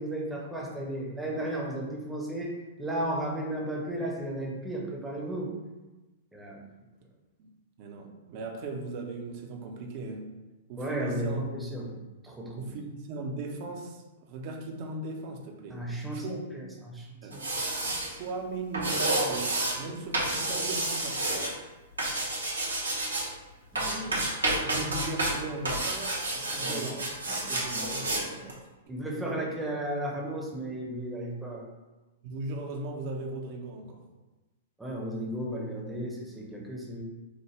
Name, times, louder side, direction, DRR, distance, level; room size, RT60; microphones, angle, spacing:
voice 1, 0.0-2.5 2.8-5.5 6.3-6.6 10.8-12.0 12.2-12.7 15.7-17.1 17.3-17.4 23.7-24.0 26.5-26.8 27.3-28.5 28.9-31.7 34.8-37.0, right 1 dB, 5° right, -2 dB, 0.8 m, -34 dB
voice 2, 7.4-10.4 10.7-11.4 12.5-15.8 16.1-16.7 17.2-17.4 18.1-21.2 23.8-24.2 24.6-27.1 27.4-28.2 29.0-29.5 32.2-34.1, right 2 dB, 40° right, 2 dB, 0.6 m, -38 dB
sound 1, 17.3-18.1 18.7-19.8 20.1-21.5 22.0-23.3 23.8-25.4 25.6-28.2 28.5-28.6, right 2 dB, 75° right, 0.9 m, -30 dB
4.9 x 2.1 x 3.1 m, 1.1 s
figure-of-eight pair, 105°, 0 cm